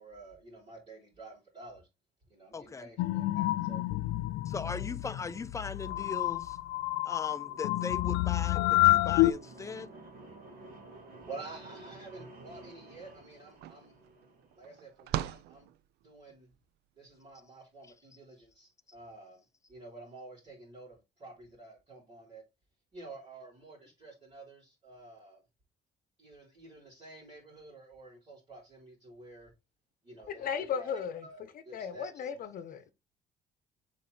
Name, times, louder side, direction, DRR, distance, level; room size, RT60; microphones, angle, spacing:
voice 1, 0.0-1.9 2.3-3.8 11.3-14.0 14.6-15.7 16.0-16.5 17.0-22.4 22.9-25.4 26.2-29.5 30.0-31.4 31.6-32.1, right 3 dB, 35° right, 3.9 m, -50 dB
voice 2, 2.5-2.9 4.5-6.6 7.0-9.9, left 4 dB, 20° left, 0.5 m, -39 dB
sound 1, 3.0-9.3, left 18 dB, 85° left, 0.4 m, -28 dB
sound 2, 6.7-14.6, right 2 dB, 55° right, 2.8 m, -52 dB
sound 3, 13.0-13.1 13.3-16.4, right 13 dB, 75° right, 0.4 m, -40 dB
voice 3, 30.3-31.3 31.7-32.9, left 7 dB, 60° left, 0.8 m, -35 dB
6.8 x 4.3 x 3.3 m
cardioid pair, 110°, 17 cm